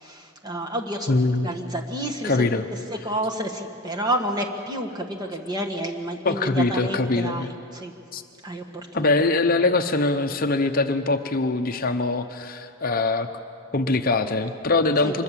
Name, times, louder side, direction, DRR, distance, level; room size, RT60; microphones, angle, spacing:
voice 1, 0.0-1.1 1.4-2.4 2.7-7.9 8.4-9.1 15.0-15.1, right 1 dB, 20° right, 2 dB, 1.7 m, -30 dB
voice 2, 1.1-1.5 2.2-2.6 6.2-7.5 8.1-8.2 8.9-13.3 13.7-15.2, left 3 dB, 45° left, 7 dB, 0.8 m, -23 dB
25.0 x 21.5 x 7.5 m, 2.5 s
head